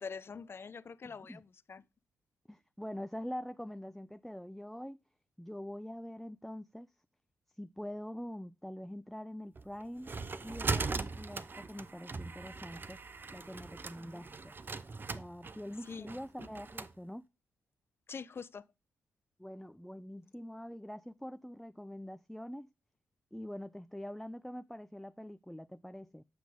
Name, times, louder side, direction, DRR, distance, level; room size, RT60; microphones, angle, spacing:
voice 1, 0.0-1.8 15.9-16.1 18.1-18.6, left 5 dB, 50° left, 0.7 m, -44 dB
voice 2, 1.0-1.4 2.5-5.0 5.4-6.9 7.6-10.1 10.4-13.0 13.3-14.5 15.1-17.2 19.4-22.7 23.3-26.2, equal, 5° left, 0.5 m, -44 dB
sound 1, 9.6-16.9, right 4 dB, 40° right, 0.8 m, -40 dB
9.3 x 6.0 x 3.7 m
hypercardioid pair, 45°, 5 cm